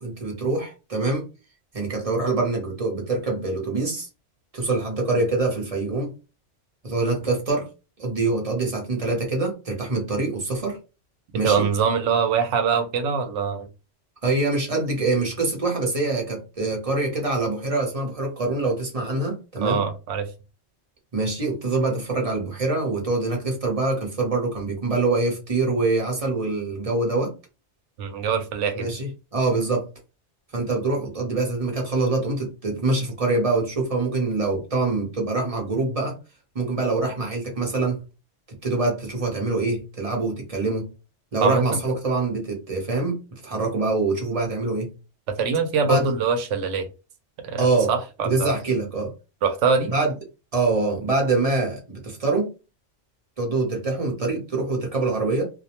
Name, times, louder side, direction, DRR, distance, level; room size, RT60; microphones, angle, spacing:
voice 1, 0.0-1.3 1.7-4.1 4.5-6.1 6.8-7.7 8.0-10.8 11.3-11.6 14.2-19.8 21.1-27.3 28.7-29.9 30.5-36.2 36.5-38.0 38.6-40.9 41.3-43.2 43.4-44.9 45.8-46.1 47.6-47.9 48.2-49.1 49.9-50.1 50.5-52.5 53.4-55.4, right 3 dB, 35° right, 0 dB, 0.8 m, -24 dB
voice 2, 11.4-13.7 19.6-20.3 28.0-28.9 41.4-41.8 45.3-46.9 47.4-48.5 49.4-49.9, right 6 dB, 85° right, 7 dB, 0.9 m, -23 dB
2.4 x 2.0 x 2.8 m, 0.30 s
omnidirectional pair, 1.2 m